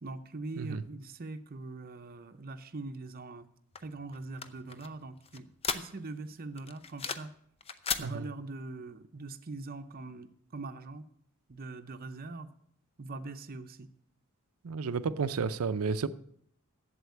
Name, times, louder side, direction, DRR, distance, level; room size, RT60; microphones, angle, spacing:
voice 1, 0.0-3.5 3.8-7.3 8.0-11.1 11.5-12.5 13.0-13.9, right 3 dB, 45° right, 0.7 m, -42 dB
sound 1, 3.7-6.2 6.6-7.4 7.6-8.1, left 6 dB, 25° left, 0.6 m, -36 dB
voice 2, 14.6-16.1, right 5 dB, 85° right, 0.5 m, -32 dB
7.9 x 7.5 x 8.4 m
head